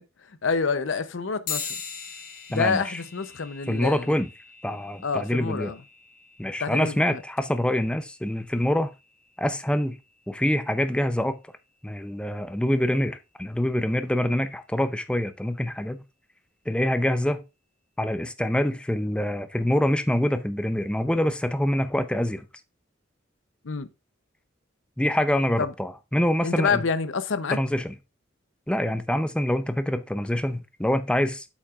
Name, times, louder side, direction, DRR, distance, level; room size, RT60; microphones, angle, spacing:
voice 1, 0.4-1.8 2.5-4.2 5.0-5.8 6.6-7.2 23.6-23.9 25.6-25.7 26.4-27.6, left 5 dB, 75° left, 0.7 m, -27 dB
sound 1, 1.5-11.3, left 6 dB, 45° left, 1.2 m, -42 dB
voice 2, 2.5-3.0 3.7-4.3 4.6-5.7 6.4-8.9 9.4-10.0 10.3-11.4 11.8-16.0 16.7-17.4 18.0-22.5 25.0-26.8 27.5-27.9 28.7-31.5, left 1 dB, 5° left, 0.5 m, -25 dB
8.7 x 7.3 x 2.4 m
head